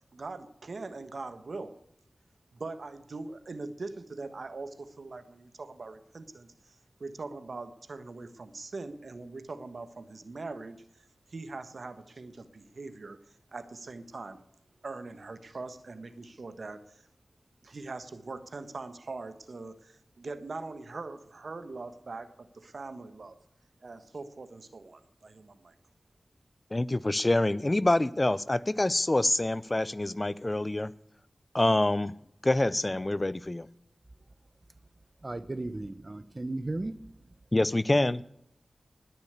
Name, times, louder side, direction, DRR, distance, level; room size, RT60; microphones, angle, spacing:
voice 1, 0.1-1.8 2.5-14.4 14.8-17.1 17.6-23.4 23.8-25.8, right 3 dB, 70° right, 11 dB, 1.4 m, -42 dB
voice 2, 26.7-30.9 31.5-32.1 32.4-33.7 37.5-38.2, left 2 dB, 30° left, 18 dB, 0.6 m, -26 dB
voice 3, 35.2-37.0, right 2 dB, 40° right, 15 dB, 1.0 m, -35 dB
20.0 x 7.0 x 8.2 m, 0.77 s
wide cardioid pair, 65°, 0 cm